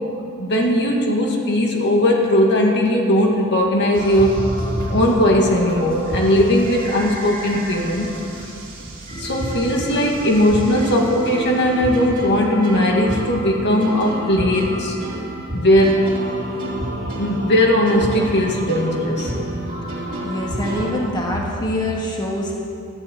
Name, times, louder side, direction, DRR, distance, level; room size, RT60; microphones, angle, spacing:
voice 1, 0.4-4.4 4.9-8.1 9.2-15.0 15.5-16.0 17.1-19.3, left 1 dB, 50° left, 0 dB, 2.0 m, -18 dB
sound 1, 3.9-20.9, right 1 dB, 40° right, 3.3 m, -29 dB
voice 2, 20.2-22.5, left 1 dB, 20° left, -2 dB, 1.7 m, -24 dB
13.0 x 11.0 x 8.2 m, 2.5 s
head